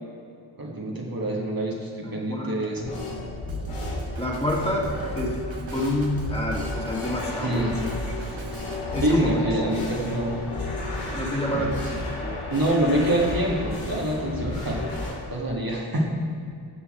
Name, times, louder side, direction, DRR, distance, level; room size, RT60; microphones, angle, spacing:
voice 1, 0.6-2.9 7.4-8.4 9.0-10.4 11.5-11.7 12.5-14.8 15.3-16.1, right 1 dB, 45° right, -2 dB, 1.9 m, -26 dB
voice 2, 2.0-2.7 4.2-7.6 8.9-9.3 11.1-11.8 12.2-12.4 14.5-14.7, left 1 dB, 10° left, -3 dB, 2.4 m, -28 dB
sound 1, 2.8-15.1, left 2 dB, 90° left, 2.7 m, -32 dB
Drum kit, 3.5-8.8, right 3 dB, 65° right, 1.4 m, -41 dB
13.5 x 6.9 x 4.4 m, 2.4 s
cardioid pair, 45°, 49 cm